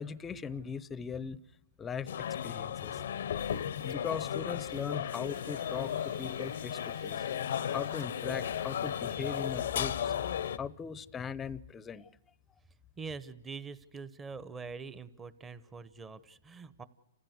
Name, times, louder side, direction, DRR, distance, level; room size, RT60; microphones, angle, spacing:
voice 1, 0.0-1.4 1.8-3.0 3.5-7.3 7.7-12.1, left 6 dB, 15° left, 0.7 m, -39 dB
sound 1, 2.1-10.6, left 9 dB, 70° left, 0.7 m, -35 dB
sound 2, 3.4-4.4 4.7-10.6, right 11 dB, 55° right, 3.9 m, -60 dB
voice 2, 13.0-16.8, right 4 dB, 15° right, 1.0 m, -44 dB
29.5 x 15.0 x 8.1 m
hypercardioid pair, 140°, 0 cm